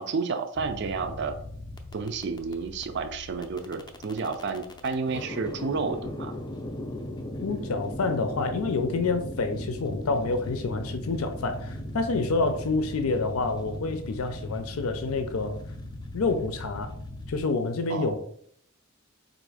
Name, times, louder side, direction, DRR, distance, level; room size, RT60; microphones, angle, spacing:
voice 1, 0.0-1.3 1.9-6.4 17.9-18.2, right 4 dB, 55° right, 8 dB, 0.4 m, -31 dB
sound 1, 0.6-17.4, left 1 dB, 20° left, 0.4 m, -38 dB
voice 2, 7.4-15.6 16.1-16.9 17.3-18.2, left 3 dB, 85° left, 8 dB, 0.5 m, -28 dB
4.0 x 2.6 x 4.8 m, 0.65 s
head